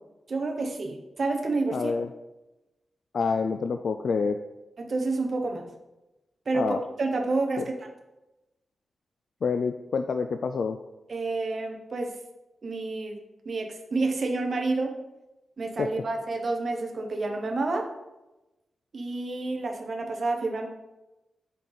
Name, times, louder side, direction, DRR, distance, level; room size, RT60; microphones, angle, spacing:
voice 1, 0.3-1.9 4.8-5.7 6.5-7.9 11.1-12.1 12.6-14.9 15.6-17.9 18.9-20.7, right 3 dB, 45° right, 3 dB, 0.8 m, -29 dB
voice 2, 1.7-2.1 3.1-4.4 6.5-6.8 7.6-7.7 9.4-10.8 15.8-15.9, left 5 dB, 65° left, 7 dB, 0.3 m, -27 dB
7.3 x 4.1 x 3.9 m, 0.99 s
wide cardioid pair, 135°, 0 cm